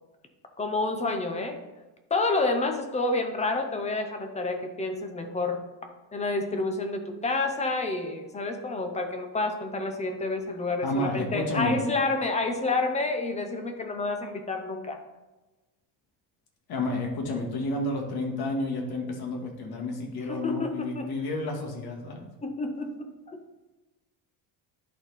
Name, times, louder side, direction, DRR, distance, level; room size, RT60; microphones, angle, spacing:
voice 1, 0.6-1.6 2.1-5.6 6.1-15.0 20.3-21.1 22.4-23.4, left 3 dB, 15° left, 5 dB, 0.6 m, -29 dB
voice 2, 10.8-11.8 16.7-22.3, left 2 dB, 50° left, 1 dB, 1.7 m, -30 dB
10.5 x 4.4 x 4.1 m, 1.1 s
cardioid pair, 160°, 49 cm